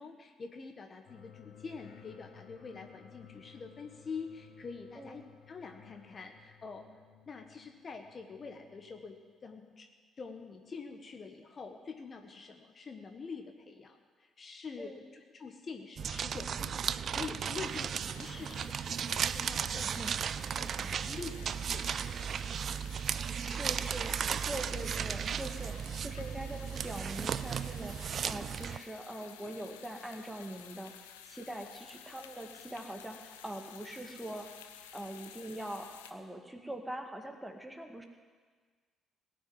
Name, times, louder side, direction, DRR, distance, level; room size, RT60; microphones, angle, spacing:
voice 1, 0.0-5.2 5.5-6.8 7.3-9.2 9.4-9.9 10.2-20.1 20.6-22.2 23.5-23.8, left 5 dB, 40° left, 5 dB, 1.4 m, -46 dB
sound 1, 1.1-9.2, left 8 dB, 60° left, 2.2 m, -57 dB
sound 2, 16.0-28.8, right 7 dB, 55° right, 0.4 m, -35 dB
sound 3, 17.6-36.1, left 9 dB, 85° left, 0.7 m, -53 dB
voice 2, 19.7-20.2 23.2-25.7 26.0-28.0 28.3-30.9 31.3-34.5 34.9-38.1, right 1 dB, 10° right, 4 dB, 2.0 m, -43 dB
17.5 x 6.3 x 9.4 m, 1.5 s
hypercardioid pair, 50°, 0 cm